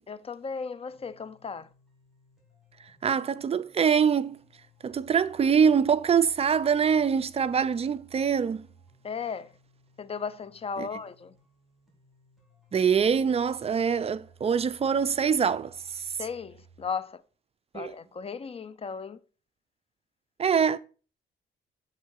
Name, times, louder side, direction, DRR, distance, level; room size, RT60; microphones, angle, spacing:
voice 1, 0.1-1.7 9.0-9.6 10.0-11.3 16.2-17.2 17.7-19.2, left 5 dB, 30° left, 0.4 m, -36 dB
sound 1, 0.9-16.9, right 4 dB, ahead, 3.0 m, -59 dB
voice 2, 3.0-4.4 4.8-8.7 10.8-10.9 12.7-16.1 17.7-17.9 20.4-20.8, right 7 dB, 30° right, 0.4 m, -24 dB
7.2 x 3.7 x 4.6 m
cardioid pair, 90°, 20 cm